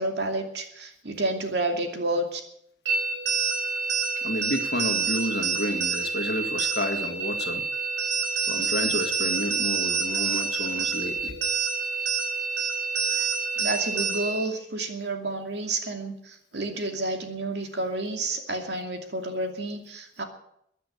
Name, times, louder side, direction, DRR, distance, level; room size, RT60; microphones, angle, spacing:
voice 1, 0.0-2.4 13.6-20.2, right 2 dB, 60° right, 4 dB, 2.6 m, -30 dB
sound 1, 2.9-14.5, right 5 dB, 85° right, 4.7 m, -27 dB
voice 2, 4.2-7.7 8.5-11.4 13.0-13.4, left 1 dB, 60° left, 7 dB, 1.9 m, -31 dB
16.0 x 10.0 x 8.5 m, 0.73 s
head